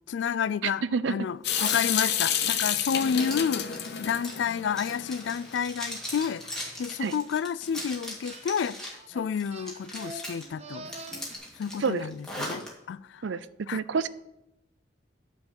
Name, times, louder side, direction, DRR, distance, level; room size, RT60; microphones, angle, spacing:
voice 1, 0.1-8.8 9.1-10.9 11.6-13.2 13.7-13.8, left 7 dB, 75° left, 0.3 m, -30 dB
voice 2, 0.6-1.1 7.0-7.1 11.8-12.1 13.2-14.1, right 5 dB, 85° right, 0.5 m, -28 dB
Water tap faucet / Sink (filling or washing) / Drip, 1.4-5.5, left 9 dB, 60° left, 0.7 m, -30 dB
Zipper (clothing), 1.5-1.8 2.3-9.0 9.4-10.4 10.8-12.7, left 1 dB, 5° left, 2.0 m, -39 dB
sound 1, 8.2-8.5 8.8-11.4, right 2 dB, 35° right, 0.7 m, -44 dB
9.5 x 4.5 x 7.5 m
head